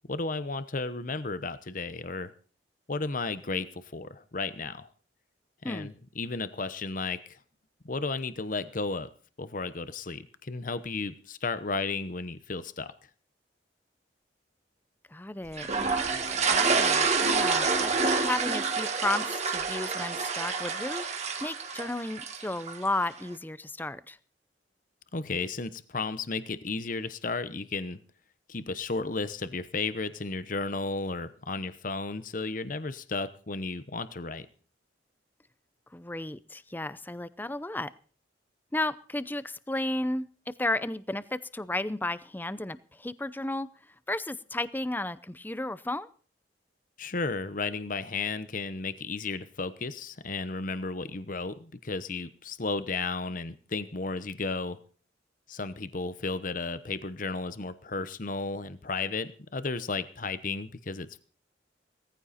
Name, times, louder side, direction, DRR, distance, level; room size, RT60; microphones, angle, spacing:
voice 1, 0.1-2.3 2.9-4.9 5.6-7.4 7.8-9.1 9.4-12.9 25.1-28.0 28.5-34.5 47.0-54.8 55.5-61.2, left 3 dB, 45° left, 13 dB, 0.9 m, -33 dB
voice 2, 15.1-15.7 16.0-21.0 21.4-24.2 35.9-37.9 38.7-43.7 44.1-46.1, left 2 dB, 10° left, 16 dB, 0.6 m, -33 dB
sound 1, 15.6-22.9, right 4 dB, 40° right, 2.0 m, -28 dB
18.5 x 14.5 x 4.3 m, 0.41 s
head